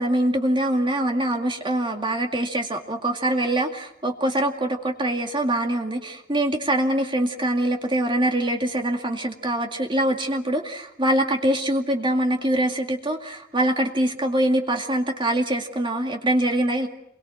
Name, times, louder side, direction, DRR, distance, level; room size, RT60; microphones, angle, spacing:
voice 1, 0.0-16.9, right 1 dB, 25° right, 3 dB, 2.2 m, -24 dB
29.0 x 22.5 x 7.9 m, 0.74 s
head